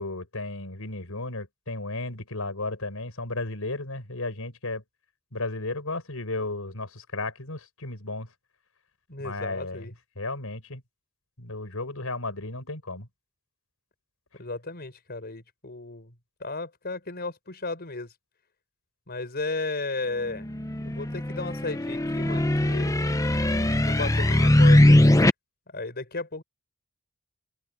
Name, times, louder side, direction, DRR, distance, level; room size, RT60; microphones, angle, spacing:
voice 1, 0.0-4.8 5.3-8.3 9.2-9.9 10.2-10.8 11.4-13.1, left 2 dB, 75° left, 5.7 m, -34 dB
voice 2, 9.1-9.9 14.4-16.1 16.4-18.1 19.1-20.5 20.8-23.0 23.6-25.1 25.7-26.4, left 3 dB, 50° left, 6.0 m, -34 dB
sound 1, 20.3-25.3, left 1 dB, 15° left, 1.0 m, -21 dB
open air
head